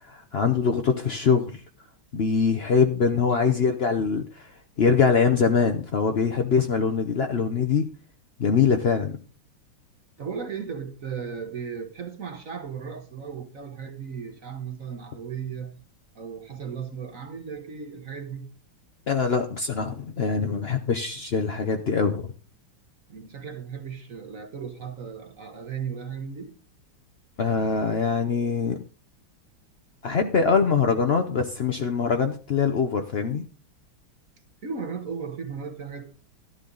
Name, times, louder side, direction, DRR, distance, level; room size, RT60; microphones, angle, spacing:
voice 1, 0.0-1.6 2.1-4.5 4.8-7.9 8.4-9.2 19.1-22.3 27.4-28.8 30.0-33.4, left 5 dB, 60° left, 0.6 m, -23 dB
voice 2, 3.3-3.7 10.2-15.8 16.1-18.5 23.1-26.6 34.6-36.1, right 6 dB, 45° right, 1.4 m, -36 dB
13.0 x 11.5 x 3.9 m
omnidirectional pair, 2.3 m